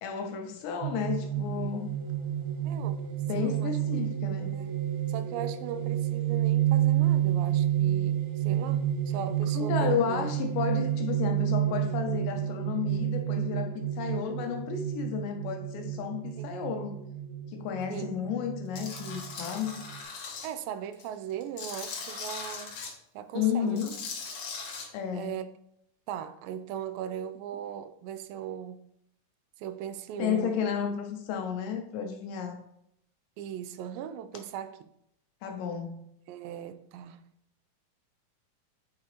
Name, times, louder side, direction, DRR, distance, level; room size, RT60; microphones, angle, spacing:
voice 1, 0.0-2.0 3.3-4.5 9.6-17.0 17.5-19.8 23.3-24.0 24.9-25.4 30.2-32.6 35.4-36.0, left 7 dB, 80° left, 2.2 m, -32 dB
sound 1, 0.8-20.0, right 11 dB, 70° right, 1.9 m, -30 dB
voice 2, 2.6-3.0 3.4-3.8 4.5-4.7 5.1-10.3 14.2-14.3 16.4-16.5 17.9-18.2 20.4-22.8 23.1-23.8 25.1-25.5 26.1-28.9 29.6-30.7 33.4-34.9 36.3-37.3, right 9 dB, 90° right, 2.3 m, -38 dB
Tools, 18.7-20.5 20.9-22.9 23.7-24.8, left 4 dB, 60° left, 2.4 m, -39 dB
8.2 x 4.8 x 3.0 m
omnidirectional pair, 3.9 m